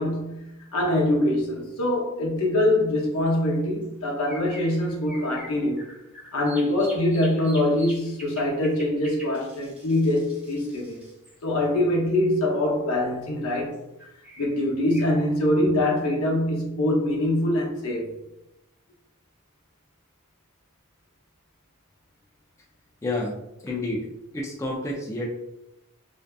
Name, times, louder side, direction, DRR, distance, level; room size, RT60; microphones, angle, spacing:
voice 1, 0.0-5.8 6.3-11.0 11.4-13.8 14.4-18.1, left 1 dB, 65° left, 0.7 m, -24 dB
sound 1, 2.8-2.9 3.8-12.2 13.4-15.0, right 1 dB, 5° right, 0.7 m, -46 dB
voice 2, 23.0-23.3 23.6-24.1 24.3-25.3, left 2 dB, 15° left, 0.3 m, -29 dB
2.6 x 2.3 x 2.2 m
head